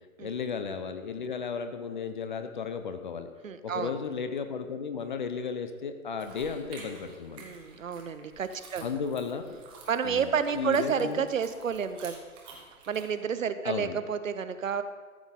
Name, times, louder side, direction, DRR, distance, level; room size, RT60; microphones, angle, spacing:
voice 1, 0.2-3.3 3.6-7.5 8.8-9.6 10.0-11.3 13.6-14.0, left 6 dB, 35° left, 8 dB, 0.6 m, -34 dB
voice 2, 3.4-3.9 7.4-8.9 9.9-12.2 12.9-14.8, right 7 dB, 65° right, 11 dB, 0.7 m, -30 dB
sound 1, 6.2-13.0, right 4 dB, 10° right, 0.9 m, -51 dB
13.0 x 7.1 x 3.7 m, 1.5 s
figure-of-eight pair, 130°, 43 cm